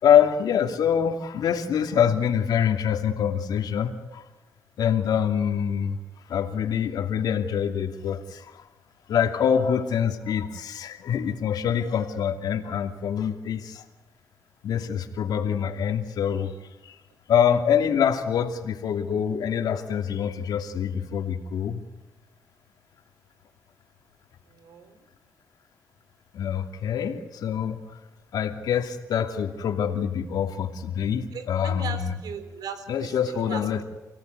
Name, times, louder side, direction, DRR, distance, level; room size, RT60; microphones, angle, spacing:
voice 1, 0.0-4.2 4.8-6.0 6.3-8.6 9.1-13.8 14.6-16.9 17.3-21.8 26.3-27.8 28.3-32.2 32.9-33.8, left 8 dB, 85° left, 6 dB, 2.7 m, -25 dB
voice 2, 24.5-25.1 31.3-33.8, right 6 dB, 85° right, 9 dB, 4.3 m, -38 dB
29.5 x 17.5 x 9.6 m, 1.1 s
cardioid pair, 100°, 7 cm